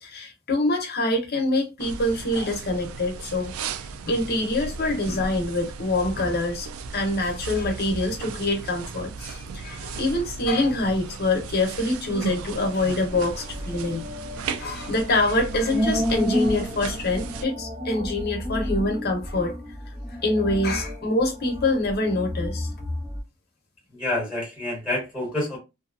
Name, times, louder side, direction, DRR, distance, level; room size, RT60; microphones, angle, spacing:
voice 1, 0.0-3.5 4.0-6.7 6.9-14.0 14.6-19.6 20.1-22.7, left 2 dB, 50° left, 0.8 m, -25 dB
sound 1, 1.8-17.5, right 5 dB, 80° right, 0.3 m, -36 dB
sound 2, 13.1-23.2, equal, 30° right, 0.9 m, -31 dB
voice 2, 23.9-25.6, left 1 dB, ahead, 1.4 m, -28 dB
2.7 x 2.3 x 2.4 m
head